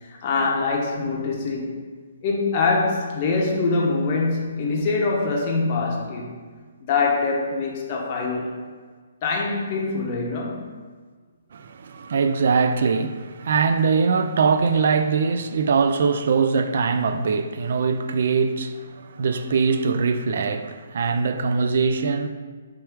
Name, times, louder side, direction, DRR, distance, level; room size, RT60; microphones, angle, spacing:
voice 1, 0.0-1.8 2.2-6.4 6.8-8.6 9.2-10.7, left 3 dB, 35° left, 0.7 m, -24 dB
voice 2, 11.5-22.3, right 5 dB, 60° right, 0.3 m, -22 dB
3.5 x 3.2 x 4.5 m
hypercardioid pair, 155°, 0 cm